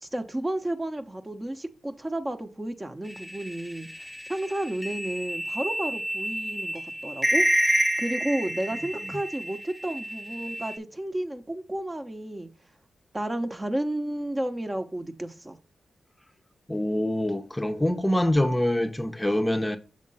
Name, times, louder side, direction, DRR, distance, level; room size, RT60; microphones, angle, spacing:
voice 1, 0.0-3.9 4.3-7.4 8.0-12.5 13.1-15.6, right 1 dB, 25° right, 0.9 m, -32 dB
sound 1, 3.2-9.5 9.8-10.7, equal, 5° right, 1.2 m, -28 dB
voice 2, 16.7-19.8, left 1 dB, 15° left, 0.7 m, -25 dB
6.5 x 3.6 x 5.4 m
cardioid pair, 50°, 0 cm